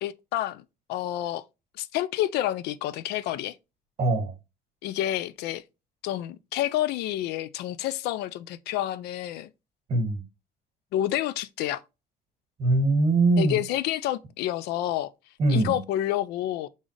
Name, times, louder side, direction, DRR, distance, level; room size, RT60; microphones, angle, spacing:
voice 1, 0.0-0.6 0.9-1.4 1.8-3.6 4.8-5.6 6.0-9.5 10.9-11.8 13.4-15.1 15.5-16.7, left 13 dB, 90° left, 0.4 m, -29 dB
voice 2, 4.0-4.3 9.9-10.2 12.6-13.6 15.4-15.8, right 2 dB, 40° right, 1.9 m, -22 dB
4.0 x 3.7 x 3.2 m
cardioid pair, 140°, 16 cm